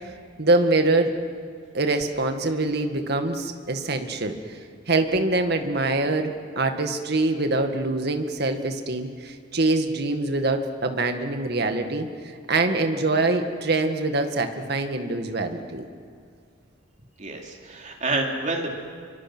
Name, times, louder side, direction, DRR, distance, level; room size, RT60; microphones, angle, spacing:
voice 1, 0.4-1.1 1.7-4.6 4.9-12.1 12.5-15.8, right 2 dB, 55° right, 6 dB, 1.9 m, -24 dB
voice 2, 17.2-18.8, right 2 dB, 35° right, 0 dB, 3.3 m, -28 dB
29.0 x 24.0 x 6.2 m, 2.2 s
head